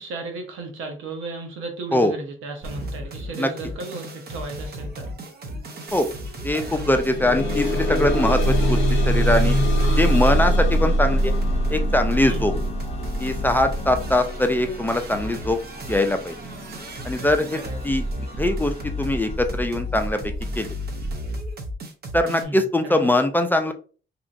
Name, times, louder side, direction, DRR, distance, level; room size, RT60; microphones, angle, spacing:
voice 1, 0.0-5.1 9.8-10.0 12.3-12.5 17.1-17.2 17.5-17.8 22.3-23.1, right 3 dB, 90° right, 3 dB, 0.9 m, -35 dB
sound 1, 2.6-22.4, equal, 55° right, 0.7 m, -33 dB
sound 2, 5.9-6.1 6.4-17.5 18.2-18.3 18.8-18.9, equal, 75° left, 0.6 m, -23 dB
voice 2, 6.4-8.8 9.1-9.6 10.0-11.3 11.7-12.5 13.2-15.6 15.9-16.3 17.0-17.6 17.8-18.0 18.4-20.2 20.6-20.7 22.1-23.7, left 1 dB, 10° left, 6 dB, 0.4 m, -22 dB
sound 3, 8.3-19.4, left 3 dB, 30° left, 0.7 m, -44 dB
2.9 x 2.6 x 2.5 m, 0.37 s
cardioid pair, 90°, 20 cm